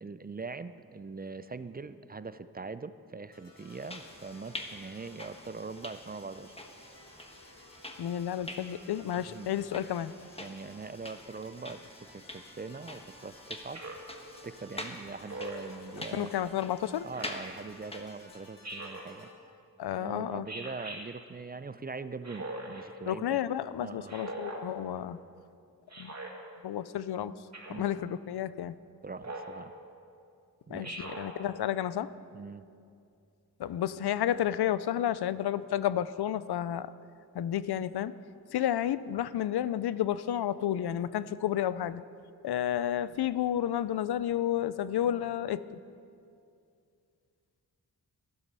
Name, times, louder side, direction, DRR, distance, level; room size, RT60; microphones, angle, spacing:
voice 1, 0.0-6.6 9.2-9.5 10.4-13.8 14.4-16.5 17.0-19.3 19.9-23.4 23.8-24.2 27.7-28.1 29.0-29.8 30.7-31.1 32.3-32.7, right 4 dB, 25° right, 13 dB, 0.5 m, -42 dB
sound 1, 3.3-19.3, left 2 dB, 60° left, 3.0 m, -57 dB
sound 2, 3.6-18.5, left 1 dB, 15° left, 1.3 m, -46 dB
voice 2, 8.0-10.1 16.1-17.0 19.8-20.5 23.1-25.2 26.0-26.1 26.6-27.3 27.8-28.7 30.7-32.1 33.6-36.9 37.3-38.1 38.5-42.0 42.4-45.6, left 11 dB, 80° left, 16 dB, 0.5 m, -31 dB
Speech synthesizer, 13.7-14.1 15.3-15.7 17.1-17.5 18.6-19.1 20.5-21.0 22.2-22.8 24.1-24.6 25.9-26.3 27.5-27.9 29.2-29.6 30.8-31.3, right 2 dB, 45° right, 2.5 m, -41 dB
13.5 x 11.5 x 5.5 m, 2.5 s
cardioid pair, 60°, 38 cm